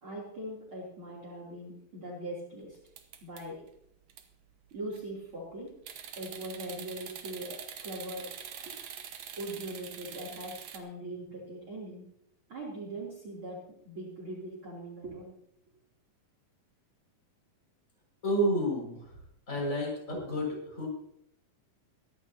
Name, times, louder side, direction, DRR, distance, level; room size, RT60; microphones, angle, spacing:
voice 1, 0.0-2.8 3.2-3.7 4.7-5.8 6.2-8.8 9.4-12.1 12.5-15.4 19.5-19.6, right 1 dB, 35° right, -3 dB, 3.8 m, -41 dB
sound 1, 2.9-3.7 4.1-4.2 4.7-5.1 5.8-10.8, right 8 dB, 65° right, 1.6 m, -44 dB
voice 2, 18.2-19.1 19.5-20.9, equal, 20° left, -2 dB, 6.4 m, -30 dB
23.0 x 11.0 x 2.9 m, 0.70 s
omnidirectional pair, 4.3 m